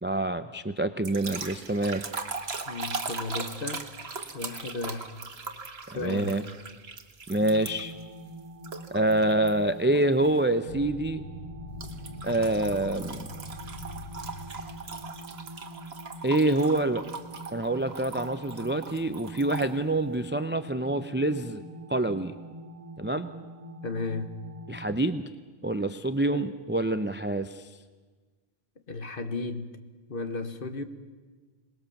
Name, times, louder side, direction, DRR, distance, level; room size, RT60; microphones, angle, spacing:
voice 1, 0.0-2.0 5.9-6.4 7.3-7.9 8.9-11.2 12.2-13.3 16.2-17.0 17.5-21.6 21.9-22.3 23.0-23.3 24.7-25.2 25.6-27.7, right 2 dB, 15° right, 10 dB, 0.6 m, -26 dB
sound 1, 1.0-8.0 8.6-9.5 10.0-10.3 11.8-19.7, right 4 dB, 65° right, 1.7 m, -39 dB
voice 2, 2.6-3.9 4.3-5.1 5.9-6.3 23.8-24.3 26.3-26.5 28.9-29.8 30.1-30.8, left 3 dB, 55° left, 9 dB, 1.6 m, -34 dB
sound 2, 7.3-24.9, right 1 dB, 40° right, 2.4 m, -45 dB
sound 3, 10.7-15.2, left 1 dB, 85° left, 4.5 m, -43 dB
26.5 x 20.0 x 7.2 m, 1.4 s
omnidirectional pair, 1.1 m